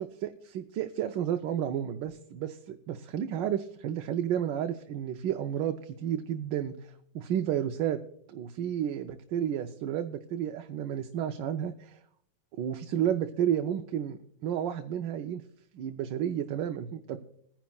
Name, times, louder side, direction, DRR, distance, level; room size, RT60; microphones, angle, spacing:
voice 1, 0.0-8.0 8.3-12.0 12.6-15.4 15.7-17.2, right 10 dB, 85° right, 7 dB, 1.3 m, -32 dB
21.0 x 10.5 x 2.3 m, 0.66 s
omnidirectional pair, 1.9 m